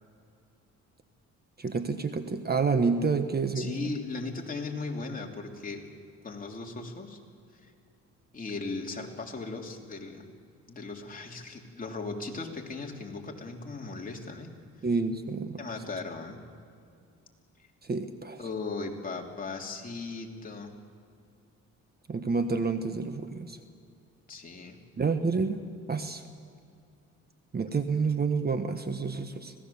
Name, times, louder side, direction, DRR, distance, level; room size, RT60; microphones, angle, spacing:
voice 1, 1.6-3.9 14.8-15.6 17.8-18.4 22.1-23.6 25.0-26.2 27.5-29.5, right 4 dB, 30° right, 8 dB, 1.3 m, -29 dB
voice 2, 3.5-5.9 6.2-7.2 7.6-7.7 8.3-10.3 10.7-14.5 15.6-16.4 18.4-20.7 24.3-24.8, left 3 dB, 30° left, 0 dB, 3.1 m, -37 dB
26.0 x 18.0 x 7.1 m, 2.4 s
cardioid pair, 90°, 30 cm